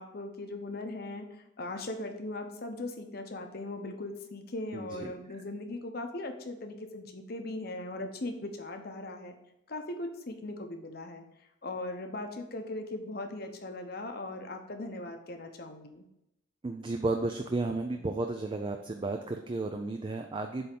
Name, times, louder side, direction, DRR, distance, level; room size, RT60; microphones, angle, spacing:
voice 1, 0.0-9.3 9.7-11.3 11.6-16.1, left 2 dB, 50° left, 5 dB, 0.9 m, -39 dB
voice 2, 4.7-5.1 16.6-20.7, right 2 dB, 25° right, 5 dB, 0.4 m, -33 dB
7.8 x 3.5 x 5.9 m, 0.86 s
head